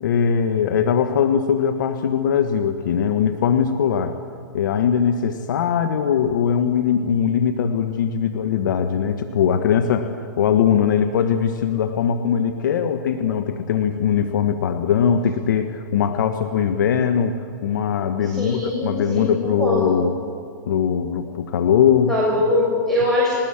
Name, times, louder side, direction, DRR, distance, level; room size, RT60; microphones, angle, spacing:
voice 1, 0.0-4.2 4.5-20.1 20.7-22.1, left 8 dB, 65° left, 8 dB, 1.3 m, -20 dB
voice 2, 18.2-19.9 22.1-23.3, left 1 dB, 5° left, -6 dB, 6.8 m, -22 dB
21.0 x 19.0 x 8.8 m, 2.2 s
hypercardioid pair, 125°, 11 cm